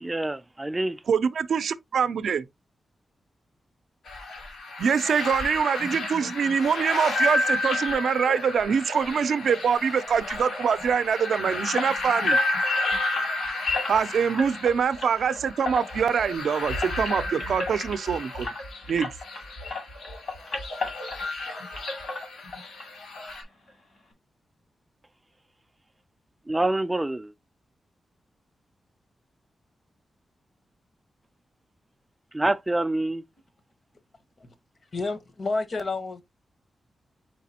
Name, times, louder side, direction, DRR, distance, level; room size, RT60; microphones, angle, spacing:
voice 1, 0.0-1.0 26.5-27.3 32.3-33.2, right 2 dB, 15° right, 0.3 m, -26 dB
voice 2, 1.1-2.4 4.8-12.4 13.9-18.5 18.9-19.1, right 7 dB, 80° right, 0.4 m, -24 dB
sound 1, 4.1-23.4, left 2 dB, 85° left, 1.5 m, -31 dB
sound 2, 10.3-19.4 19.7-21.5 21.7-22.9 23.1-23.2 23.7-23.8 24.1-24.2, left 2 dB, 70° left, 2.3 m, -36 dB
voice 3, 34.9-36.2, left 3 dB, 50° left, 0.9 m, -29 dB
4.6 x 4.0 x 2.8 m
wide cardioid pair, 105°, 0 cm